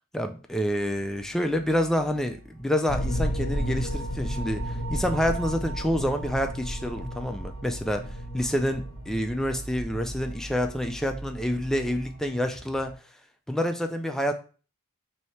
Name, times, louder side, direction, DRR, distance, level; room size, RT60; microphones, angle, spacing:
voice 1, 0.1-8.0 8.3-13.0 13.5-14.3, equal, ahead, 5 dB, 0.3 m, -28 dB
sound 1, 0.7-12.9, right 2 dB, 25° right, 1.4 m, -43 dB
sound 2, 2.9-11.2, equal, 30° left, 0.8 m, -33 dB
sound 3, 3.5-8.6, right 4 dB, 45° right, 1.1 m, -45 dB
3.2 x 2.7 x 4.1 m, 0.38 s
head